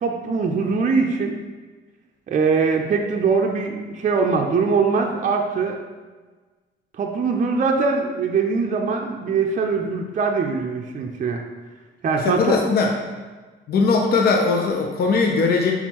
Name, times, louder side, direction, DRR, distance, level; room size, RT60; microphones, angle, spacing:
voice 1, 0.0-1.4 2.3-5.8 7.0-11.4 12.0-12.5, right 4 dB, 40° right, 2 dB, 0.5 m, -22 dB
voice 2, 12.2-12.9 13.7-15.7, left 4 dB, 50° left, 1 dB, 0.6 m, -19 dB
4.3 x 4.0 x 2.9 m, 1.3 s
cardioid pair, 90°, 20 cm